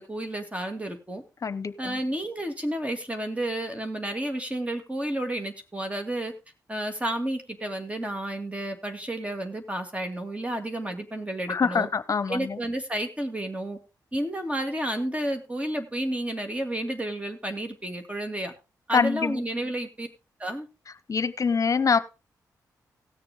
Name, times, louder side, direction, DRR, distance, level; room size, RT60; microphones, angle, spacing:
voice 1, 0.0-1.2 1.8-6.3 6.7-11.9 12.3-13.8 14.1-18.5 18.9-20.1 20.4-20.7, right 1 dB, 20° right, 6 dB, 2.4 m, -31 dB
voice 2, 1.4-2.0 11.5-12.6 18.9-19.4 21.1-22.0, left 5 dB, 50° left, 14 dB, 0.9 m, -25 dB
17.5 x 6.8 x 3.6 m, 0.28 s
cardioid pair, 65°, 7 cm